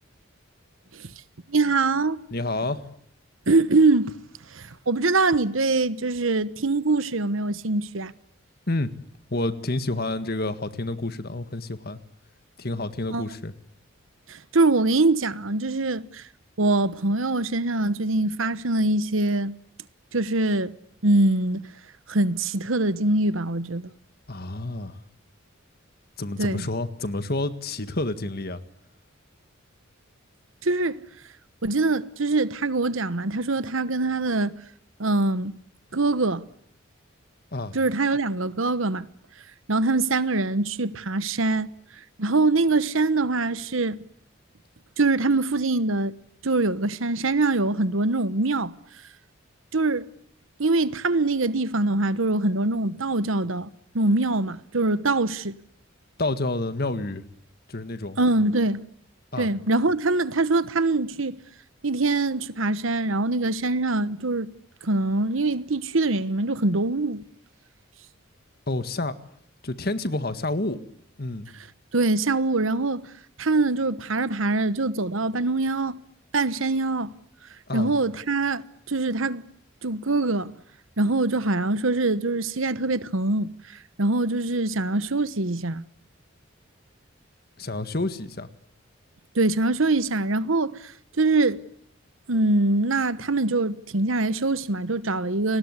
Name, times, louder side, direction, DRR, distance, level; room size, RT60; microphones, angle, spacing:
voice 1, 1.5-2.2 3.5-4.2 4.5-8.1 13.1-13.2 14.3-16.3 16.6-19.5 20.1-20.7 21.0-21.6 22.1-23.9 26.4-26.6 30.6-31.0 31.6-34.5 35.0-35.5 35.9-36.4 37.7-39.0 39.7-41.7 42.2-44.0 45.0-46.1 46.4-48.7 49.7-50.1 50.6-55.6 58.2-58.8 59.4-61.4 61.8-64.5 64.8-67.2 71.9-73.1 73.4-76.0 76.3-77.1 77.7-79.4 79.8-80.5 81.0-85.8 89.3-91.6 92.3-95.6, right 2 dB, 75° right, 1.2 m, -23 dB
voice 2, 2.3-2.9 8.7-8.9 9.3-12.0 12.6-13.5 24.3-25.0 26.2-28.6 37.5-37.8 56.2-57.2 57.7-58.2 59.3-59.5 68.7-69.2 69.6-70.8 71.2-71.5 77.7-77.9 87.6-88.5, left 2 dB, 50° left, 1.8 m, -29 dB
29.5 x 20.0 x 9.8 m
head